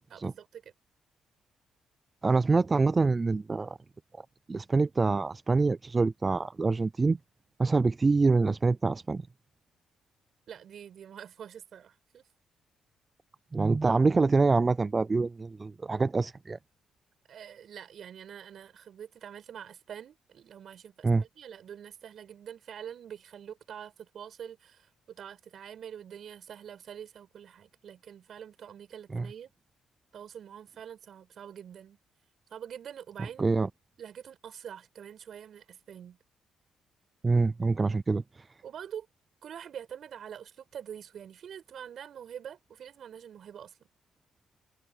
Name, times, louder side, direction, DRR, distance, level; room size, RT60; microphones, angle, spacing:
voice 1, 0.1-0.7 10.5-12.2 17.3-29.5 30.1-32.0 32.5-33.4 34.0-36.2 38.6-39.1 39.4-43.8, right 9 dB, 60° right, 7.6 m, -45 dB
voice 2, 2.2-3.8 4.5-7.2 7.6-9.3 13.5-16.6 21.0-21.2 29.1-29.3 33.4-33.7 37.2-38.5, right 3 dB, 25° right, 0.4 m, -25 dB
cardioid pair, 90°, 0 cm